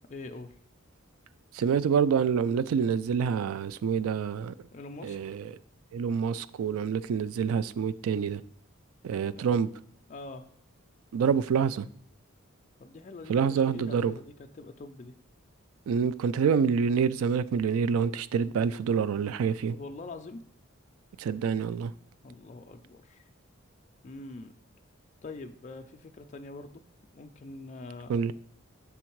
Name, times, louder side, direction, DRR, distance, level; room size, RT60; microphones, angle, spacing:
voice 1, 0.1-0.5 4.7-5.2 9.2-9.5 10.1-10.4 12.8-15.1 19.7-20.4 22.2-23.2 24.0-24.6 25.2-26.8 27.1-28.3, left 3 dB, 35° left, 0.4 m, -44 dB
voice 2, 1.5-4.5 5.0-5.4 5.9-8.4 9.0-9.7 11.1-11.9 13.3-14.1 15.9-19.7 21.2-21.9 28.1-28.3, right 6 dB, 90° right, 0.3 m, -27 dB
7.0 x 3.6 x 4.5 m
head